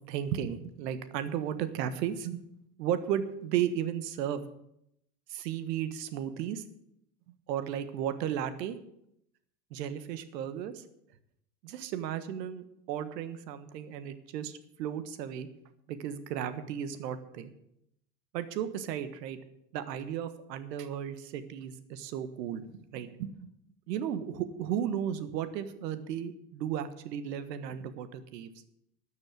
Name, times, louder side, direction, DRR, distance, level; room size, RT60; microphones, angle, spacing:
voice 1, 0.1-2.4 2.8-4.4 5.3-6.6 7.5-8.8 9.7-10.8 11.6-15.5 15.9-17.5 18.3-19.4 19.7-23.5 23.9-28.5, right 9 dB, 80° right, 11 dB, 1.5 m, -34 dB
13.0 x 6.7 x 8.9 m, 0.77 s
supercardioid pair, 115°, 49 cm